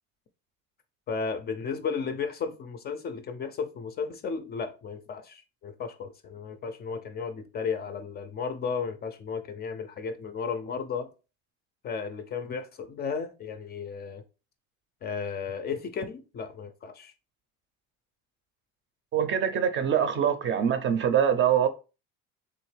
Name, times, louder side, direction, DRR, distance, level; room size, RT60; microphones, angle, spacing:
voice 1, 1.1-11.1 11.8-14.2 15.0-17.1, left 5 dB, 35° left, 0.4 m, -34 dB
voice 2, 19.1-21.7, right 8 dB, 40° right, 0.5 m, -24 dB
3.5 x 2.9 x 3.1 m
cardioid pair, 130°, 30 cm